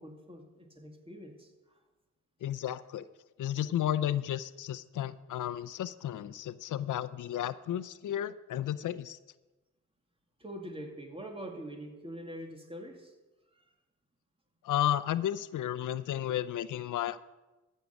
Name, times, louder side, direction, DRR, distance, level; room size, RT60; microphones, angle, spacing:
voice 1, 0.0-1.8 10.4-13.1 13.5-13.6, right 1 dB, 20° right, 3 dB, 2.2 m, -44 dB
voice 2, 2.4-3.1 3.4-9.2 14.6-17.2, left 11 dB, 85° left, 15 dB, 0.5 m, -33 dB
13.5 x 6.5 x 8.2 m, 1.1 s
cardioid pair, 85°, 30 cm